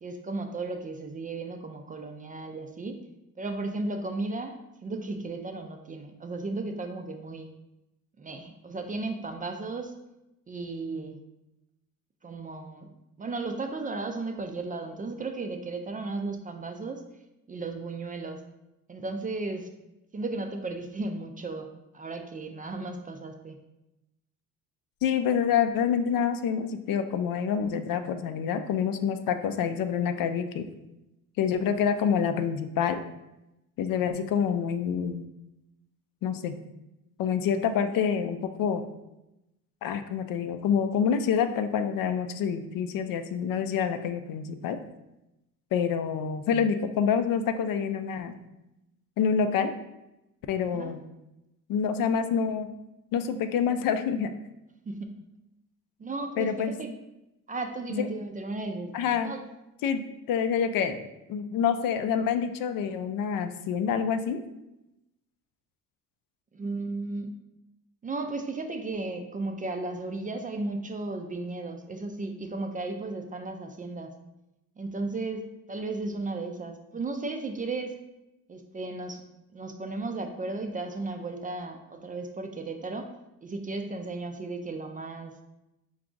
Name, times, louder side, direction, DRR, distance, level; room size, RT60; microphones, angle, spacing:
voice 1, 0.0-3.0 3.4-7.5 8.2-9.9 10.5-11.2 12.2-12.9 13.2-17.0 17.5-18.4 18.9-19.7 20.1-23.6 50.7-51.0 54.8-55.1 56.0-56.9 57.5-58.9 59.2-59.4 66.5-67.3 68.0-74.1 74.8-78.0 78.5-79.2 79.5-83.1 83.4-85.3, right 3 dB, 25° right, 5 dB, 0.4 m, -35 dB
voice 2, 25.0-30.7 31.4-33.0 33.8-35.2 36.2-36.6 37.2-38.8 39.8-44.8 45.7-48.3 49.2-49.7 50.5-51.0 51.7-52.7 53.1-54.3 56.4-56.7 58.0-58.1 58.9-59.3 59.8-64.4, left 7 dB, 65° left, 8 dB, 0.5 m, -27 dB
4.6 x 2.4 x 3.8 m, 0.92 s
cardioid pair, 95°, 36 cm